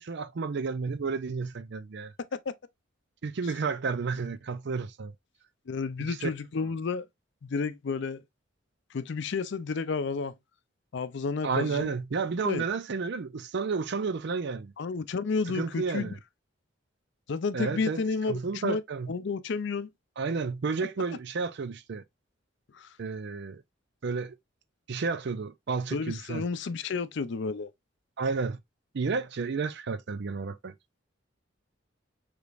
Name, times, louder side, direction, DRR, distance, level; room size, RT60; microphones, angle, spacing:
voice 1, 0.0-2.1 3.2-5.1 6.0-6.3 11.4-14.7 15.5-16.2 17.5-18.0 18.3-19.1 20.2-22.0 23.0-23.6 24.0-24.4 24.9-26.5 28.2-28.6 28.9-30.7, right 4 dB, 60° right, 0.5 m, -31 dB
voice 2, 5.7-7.0 7.4-8.2 8.9-10.3 10.9-11.9 12.4-12.6 14.8-16.2 17.3-18.8 19.1-19.9 22.7-22.9 25.9-27.7, left 4 dB, 65° left, 0.5 m, -31 dB
5.0 x 3.3 x 2.5 m
head